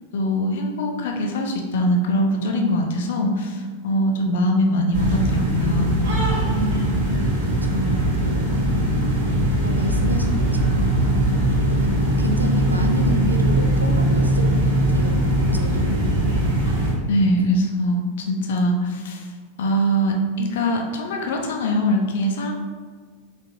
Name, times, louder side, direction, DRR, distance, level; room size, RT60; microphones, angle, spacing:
voice 1, 0.1-5.9 17.1-22.5, equal, 55° left, 2 dB, 0.5 m, -22 dB
sound 1, 4.9-16.9, right 1 dB, 55° right, 1.1 m, -20 dB
voice 2, 6.5-7.3 7.6-8.6 9.6-11.4 11.7-11.9 12.2-15.2 15.5-16.1 17.5-17.6, right 1 dB, 85° right, 3 dB, 0.4 m, -29 dB
3.9 x 2.6 x 2.6 m, 1.5 s
figure-of-eight pair, 90°, 0 cm